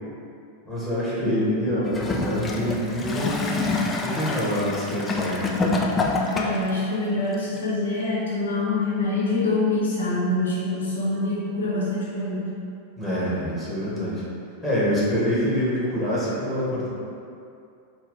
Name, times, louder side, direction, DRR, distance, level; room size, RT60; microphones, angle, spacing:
voice 1, 0.6-3.4 4.0-5.5 13.0-14.2 14.6-16.9, equal, ahead, -9 dB, 1.4 m, -25 dB
voice 2, 1.2-1.6 6.3-12.5, left 2 dB, 65° left, -6 dB, 0.9 m, -25 dB
Gurgling / Toilet flush, 1.9-6.7 7.6-7.7, left 3 dB, 15° left, 0.4 m, -26 dB
4.6 x 2.3 x 3.8 m, 2.6 s
figure-of-eight pair, 90°, 0 cm